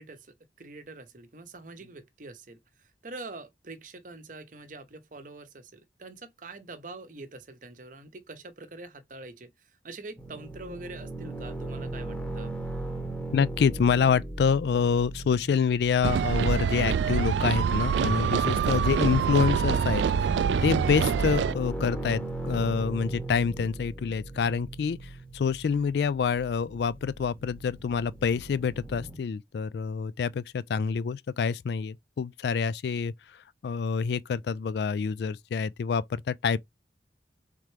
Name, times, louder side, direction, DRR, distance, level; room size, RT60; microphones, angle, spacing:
voice 1, 0.0-12.5, right 2 dB, 45° right, 0.8 m, -45 dB
sound 1, 10.2-29.2, right 2 dB, 5° left, 0.9 m, -39 dB
voice 2, 13.3-36.6, left 6 dB, 65° left, 0.3 m, -27 dB
sound 2, 16.0-21.5, right 7 dB, 80° right, 0.3 m, -25 dB
4.3 x 3.6 x 3.3 m
head